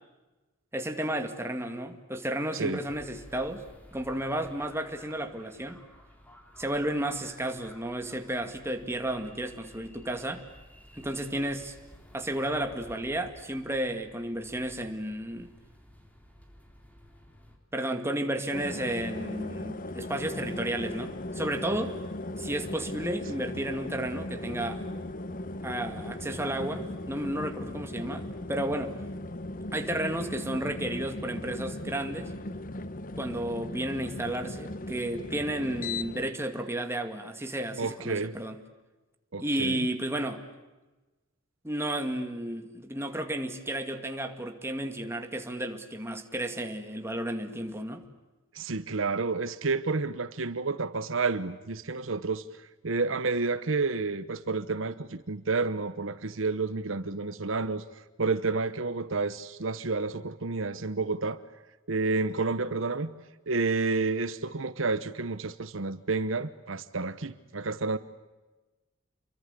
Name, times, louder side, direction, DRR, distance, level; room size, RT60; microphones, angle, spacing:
voice 1, 0.7-3.6 3.9-5.8 6.6-10.4 11.0-11.8 12.1-15.5 17.7-22.0 22.4-24.8 25.6-28.9 29.7-32.3 33.2-38.6 39.4-40.4 41.6-48.0, right 1 dB, 10° right, 2.2 m, -32 dB
sound 1, 2.8-17.6, equal, 5° left, 3.8 m, -54 dB
sound 2, 18.5-36.3, left 1 dB, 40° left, 1.1 m, -38 dB
voice 2, 37.8-38.3 39.3-39.9 48.5-52.4 52.8-57.8 58.2-61.4 61.9-63.1 63.5-68.0, right 3 dB, 70° right, 1.0 m, -30 dB
29.0 x 23.5 x 8.4 m
head